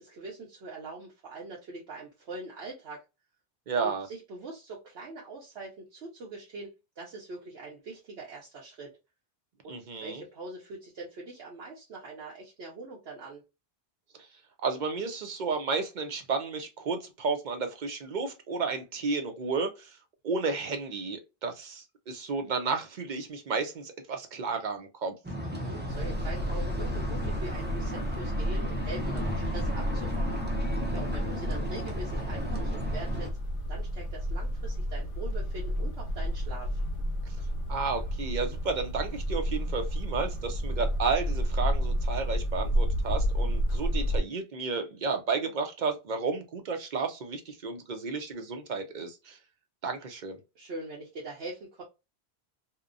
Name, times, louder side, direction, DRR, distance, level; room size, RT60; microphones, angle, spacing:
voice 1, 0.0-3.0 3.7-8.9 9.6-13.4 25.4-30.4 30.9-33.3 33.7-36.8 50.5-51.8, right 3 dB, 80° right, 1.1 m, -43 dB
voice 2, 3.7-4.1 9.7-10.2 14.6-20.0 20.2-25.1 37.7-49.4 49.8-50.4, right 4 dB, 55° right, 0.6 m, -32 dB
sound 1, 25.2-33.3, equal, 15° right, 0.4 m, -35 dB
sound 2, 25.9-44.2, equal, 60° left, 0.8 m, -31 dB
2.8 x 2.1 x 2.3 m
omnidirectional pair, 1.1 m